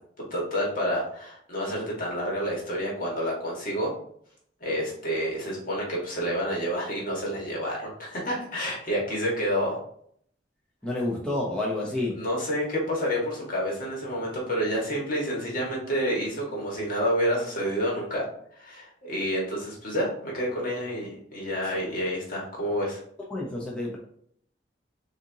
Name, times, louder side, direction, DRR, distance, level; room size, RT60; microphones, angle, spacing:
voice 1, 0.3-3.9 4.6-9.8 12.1-18.2 18.5-23.0, equal, 50° left, -3 dB, 1.7 m, -29 dB
voice 2, 10.8-12.1 23.3-24.0, left 2 dB, 5° left, -5 dB, 0.8 m, -29 dB
6.4 x 2.9 x 2.8 m, 0.65 s
head